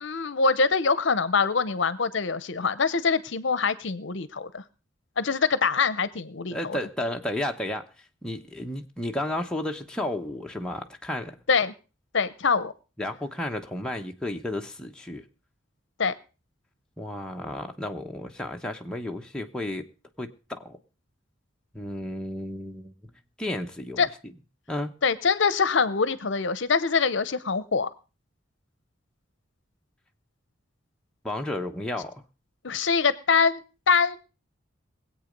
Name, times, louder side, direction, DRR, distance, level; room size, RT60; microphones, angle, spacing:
voice 1, 0.0-4.6 5.2-6.8 11.5-11.7 12.1-12.7 16.0-16.2 24.0-24.1 25.0-27.9 32.6-33.6 33.9-34.2, left 5 dB, 65° left, 17 dB, 0.7 m, -24 dB
voice 2, 6.5-7.9 8.2-11.4 13.0-15.2 17.0-19.8 20.2-20.8 21.7-22.9 23.4-24.0 24.7-24.9 31.2-32.2, left 1 dB, 5° left, 2 dB, 1.0 m, -32 dB
21.0 x 8.4 x 5.2 m, 0.34 s
head